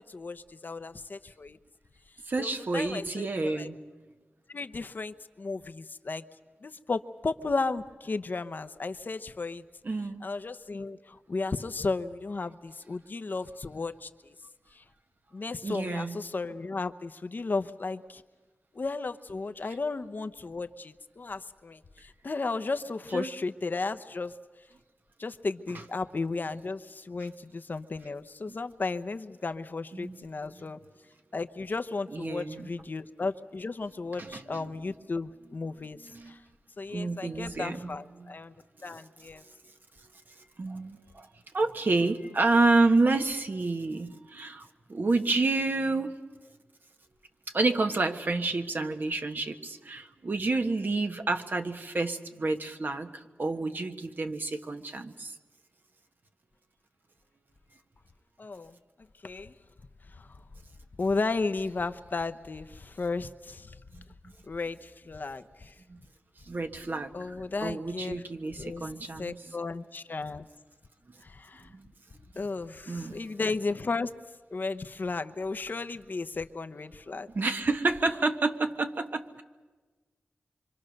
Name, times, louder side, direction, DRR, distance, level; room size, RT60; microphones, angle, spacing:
voice 1, 0.0-1.6 2.4-3.7 4.5-6.2 6.6-9.6 10.2-14.3 14.7-14.8 15.3-18.2 18.7-24.4 25.2-30.8 31.3-36.4 36.8-38.5 38.8-39.4 58.4-58.8 59.2-59.5 60.1-60.3 61.0-63.8 64.5-65.7 67.1-68.2 68.6-68.9 69.2-70.5 71.2-71.7 72.4-74.1 74.5-77.3, left 3 dB, 55° left, 9 dB, 0.9 m, -34 dB
voice 2, 2.3-3.8 9.8-10.2 15.6-16.2 23.1-23.3 29.9-30.2 30.5-30.6 32.1-32.7 34.2-34.7 36.1-36.3 36.9-38.3 38.9-39.0 40.6-41.3 41.5-46.1 47.5-55.3 63.9-64.0 65.9-66.0 66.5-67.4 67.6-69.4 71.7-71.8 72.9-73.2 77.3-79.4, right 3 dB, 55° right, 6 dB, 1.4 m, -29 dB
25.5 x 25.0 x 6.6 m, 1.3 s
wide cardioid pair, 65°, 4 cm